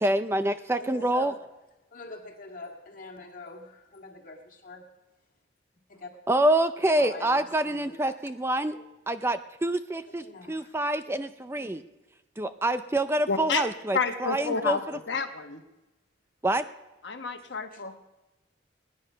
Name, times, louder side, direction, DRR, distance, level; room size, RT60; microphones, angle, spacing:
voice 1, 0.0-1.3 6.3-8.8 9.1-11.8 12.4-14.8 16.4-16.7, right 1 dB, 15° right, 10 dB, 0.4 m, -26 dB
voice 2, 0.8-1.4 1.9-4.9 5.9-6.1 7.0-8.2 8.6-8.9 10.1-10.7 11.1-11.2 17.7-17.8, left 3 dB, 45° left, 1 dB, 2.1 m, -44 dB
voice 3, 13.3-13.6 13.9-15.6 17.0-18.0, left 5 dB, 75° left, 6 dB, 1.2 m, -30 dB
19.0 x 10.5 x 5.6 m, 1.1 s
head